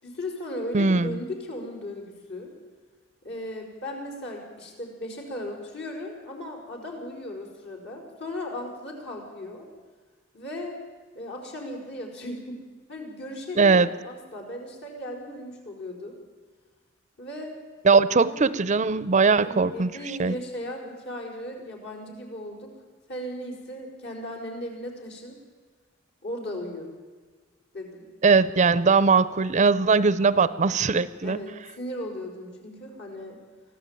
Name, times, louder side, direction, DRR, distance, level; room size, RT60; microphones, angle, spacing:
voice 1, 0.0-2.5 3.2-9.7 10.3-10.7 11.2-12.6 12.9-16.2 17.2-17.6 18.1-18.6 19.3-22.7 23.1-25.4 26.2-26.9 27.7-28.1 31.2-33.4, left 1 dB, 60° left, 1 dB, 5.3 m, -37 dB
voice 2, 0.7-1.2 13.6-13.9 17.8-20.3 28.2-31.4, right 4 dB, 35° right, 16 dB, 0.6 m, -20 dB
24.5 x 15.0 x 9.0 m, 1.4 s
head